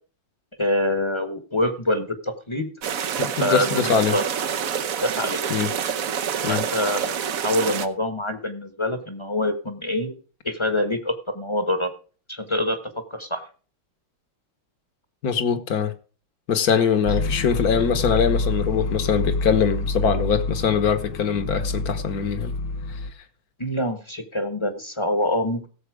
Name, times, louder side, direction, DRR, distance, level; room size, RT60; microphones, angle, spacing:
voice 1, 0.6-2.7 3.4-4.3 5.0-5.4 6.5-7.2 7.4-10.1 10.4-11.9 12.3-13.4 17.1-17.2 23.6-25.7, left 1 dB, 15° left, 1.1 m, -25 dB
sound 1, 2.8-7.9, right 8 dB, 55° right, 1.0 m, -27 dB
voice 2, 3.2-4.2 5.5-5.7 6.4-6.6 15.2-15.9 16.5-22.5, left 7 dB, 50° left, 1.5 m, -22 dB
sound 2, 17.0-23.1, left 2 dB, 85° left, 1.9 m, -27 dB
16.5 x 7.4 x 4.9 m
omnidirectional pair, 2.3 m